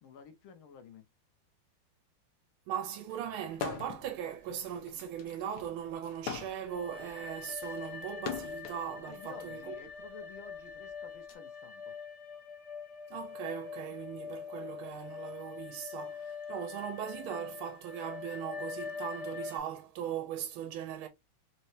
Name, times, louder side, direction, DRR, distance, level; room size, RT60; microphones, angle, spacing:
voice 1, 0.0-1.1 9.0-12.0, left 6 dB, 90° left, 1.6 m, -52 dB
voice 2, 2.7-9.7 13.1-21.1, right 9 dB, 90° right, 1.5 m, -39 dB
sound 1, 3.5-4.1 4.4-8.8 9.7-11.3, left 7 dB, 65° left, 1.1 m, -42 dB
sound 2, 6.6-19.6, left 6 dB, 40° left, 1.4 m, -44 dB
4.2 x 3.2 x 2.6 m
omnidirectional pair, 2.2 m